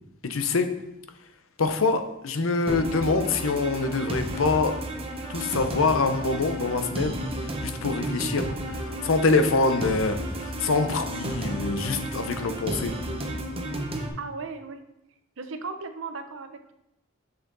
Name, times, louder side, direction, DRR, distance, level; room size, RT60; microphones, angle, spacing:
voice 1, 0.2-0.7 1.6-4.7 5.3-12.9, left 3 dB, 75° left, 8 dB, 0.8 m, -25 dB
sound 1, 2.7-14.1, right 1 dB, 30° right, 0.9 m, -32 dB
voice 2, 14.2-14.8 15.4-16.7, right 4 dB, 65° right, 8 dB, 0.7 m, -36 dB
6.9 x 6.6 x 3.9 m, 0.84 s
head